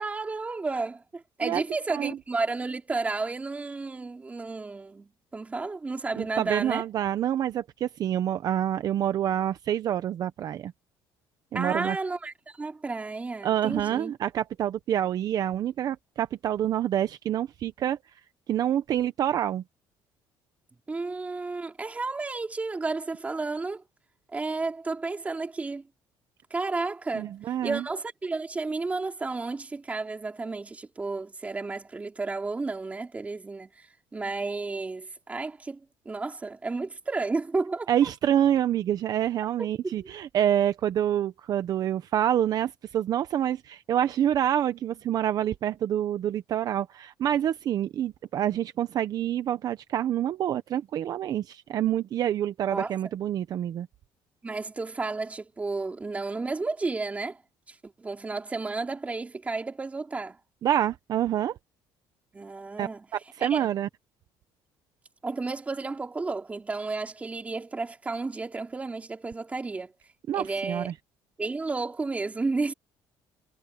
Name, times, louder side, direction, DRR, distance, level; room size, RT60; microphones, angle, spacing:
voice 1, 0.0-6.8 11.5-14.1 20.9-23.8 24.3-25.8 26.5-27.3 27.6-38.1 39.6-40.1 52.7-52.9 54.4-57.4 57.7-60.4 62.3-63.1 63.4-63.7 65.2-69.9 70.3-70.9 71.4-72.7, right 3 dB, 15° right, 3.7 m, -32 dB
voice 2, 6.2-10.7 11.5-12.0 13.4-18.0 18.5-19.6 27.1-27.8 37.9-53.9 60.6-61.6 62.8-63.9 70.3-70.9, right 10 dB, 50° right, 0.8 m, -27 dB
cardioid pair, 145°, 9 cm